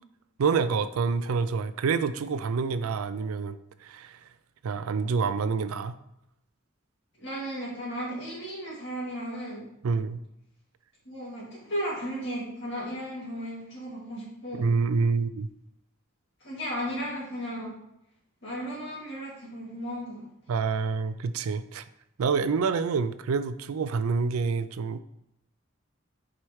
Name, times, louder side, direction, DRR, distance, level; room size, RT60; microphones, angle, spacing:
voice 1, 0.4-4.2 4.6-6.0 9.8-10.2 14.6-15.5 20.5-21.8 22.2-25.0, right 5 dB, 90° right, 12 dB, 0.4 m, -27 dB
voice 2, 7.2-9.7 11.0-14.7 16.4-17.8 18.4-20.2, equal, 55° left, -5 dB, 2.4 m, -35 dB
4.9 x 4.3 x 4.6 m, 0.82 s
head